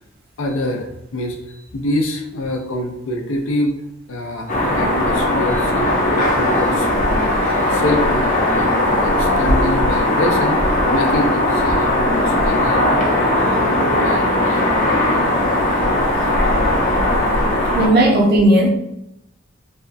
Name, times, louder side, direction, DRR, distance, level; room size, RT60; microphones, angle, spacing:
voice 1, 0.4-3.7 4.1-12.8 13.3-14.7 16.2-16.3 17.0-17.8, left 1 dB, 85° left, 2 dB, 0.5 m, -26 dB
sound 1, 4.5-17.9, left 1 dB, 40° left, 0.6 m, -18 dB
voice 2, 17.7-18.7, right 1 dB, 50° right, 0 dB, 0.6 m, -14 dB
2.7 x 2.2 x 2.5 m, 0.83 s
head